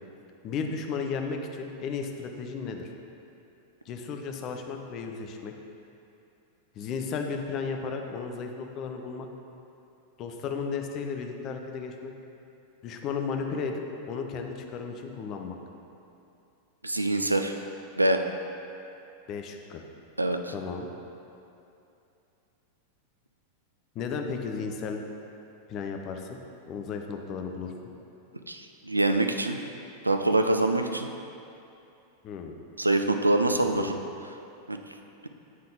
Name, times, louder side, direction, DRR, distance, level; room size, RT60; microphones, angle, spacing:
voice 1, 0.4-2.9 3.9-5.5 6.7-9.3 10.2-12.1 12.8-15.6 19.3-19.8 20.5-20.9 23.9-25.0 25.7-26.4 26.7-27.7 32.2-32.6 33.6-33.9, left 5 dB, 35° left, 4 dB, 0.5 m, -34 dB
voice 2, 16.8-17.5 18.0-18.2 20.2-20.5 28.5-29.6 30.0-31.1 32.8-34.0 34.7-34.8, right 2 dB, 85° right, 6 dB, 0.3 m, -25 dB
8.5 x 3.7 x 3.7 m, 2.7 s
figure-of-eight pair, 90°, 0 cm